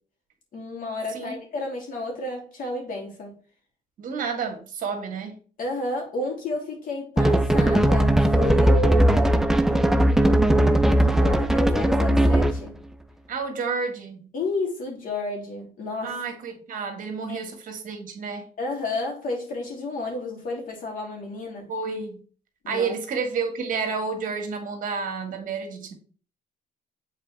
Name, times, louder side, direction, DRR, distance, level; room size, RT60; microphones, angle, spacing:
voice 1, 0.5-3.4 5.6-9.4 9.7-12.8 14.3-16.2 17.3-17.4 18.6-21.7 22.6-22.9, left 2 dB, 55° left, 2.7 m, -31 dB
voice 2, 4.0-5.3 13.3-14.3 16.0-18.5 21.7-22.2 22.6-25.9, right 5 dB, 55° right, 1.7 m, -30 dB
sound 1, 7.2-12.7, right 1 dB, 5° right, 0.4 m, -19 dB
7.4 x 4.1 x 3.3 m
cardioid pair, 110°, 17 cm